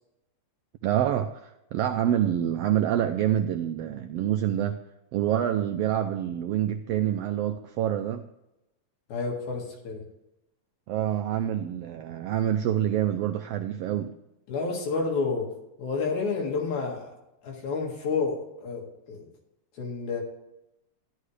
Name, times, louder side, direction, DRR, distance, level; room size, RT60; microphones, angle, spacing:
voice 1, 0.8-4.8 5.1-8.2 10.9-14.1, right 11 dB, 90° right, 7 dB, 1.3 m, -26 dB
voice 2, 9.1-10.0 14.5-15.5 15.8-17.1 17.4-18.4 18.6-19.3 19.8-20.2, left 4 dB, 80° left, 0 dB, 3.4 m, -29 dB
13.5 x 11.5 x 3.3 m, 0.90 s
omnidirectional pair, 3.3 m